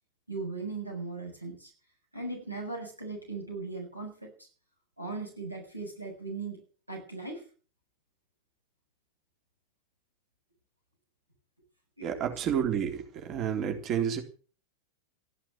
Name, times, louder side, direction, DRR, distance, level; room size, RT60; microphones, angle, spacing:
voice 1, 0.3-1.7 2.1-4.5 5.0-6.6 6.9-7.4 12.0-12.1, right 3 dB, 85° right, 2 dB, 7.1 m, -38 dB
voice 2, 12.0-14.2, right 8 dB, 35° right, 4 dB, 3.7 m, -30 dB
14.5 x 11.5 x 7.8 m, 0.40 s
figure-of-eight pair, 90°, 0 cm